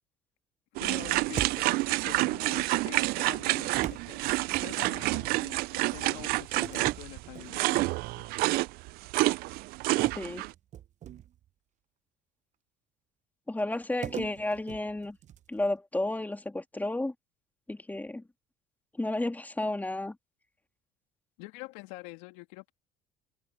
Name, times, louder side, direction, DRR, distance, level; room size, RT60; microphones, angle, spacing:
voice 1, 0.8-8.3 21.4-22.7, left 23 dB, 80° left, 2.6 m, -46 dB
sound 1, 0.8-10.5, right 21 dB, 65° right, 0.5 m, -28 dB
sound 2, 1.4-2.0 3.8-5.1 6.6-8.0 8.4-8.7 10.0-11.5 14.0-15.7, right 10 dB, 45° right, 0.9 m, -41 dB
voice 2, 13.5-15.2 15.5-17.1 17.7-18.2 19.0-20.2, left 2 dB, 10° left, 2.6 m, -32 dB
supercardioid pair, 75°, 17 cm